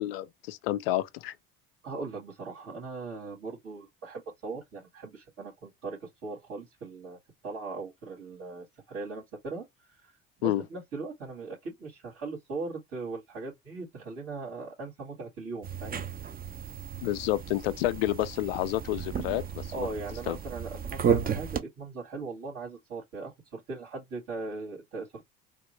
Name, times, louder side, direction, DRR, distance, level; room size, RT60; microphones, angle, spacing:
voice 1, 0.0-1.3 10.4-10.6 17.0-19.9 20.3-20.4, left 15 dB, 80° left, 0.4 m, -29 dB
voice 2, 1.8-10.1 10.4-16.0 19.7-25.2, right 3 dB, 60° right, 2.1 m, -39 dB
sound 1, 15.6-21.6, right 7 dB, 30° right, 0.6 m, -33 dB
3.4 x 2.1 x 3.1 m
hypercardioid pair, 65°, 29 cm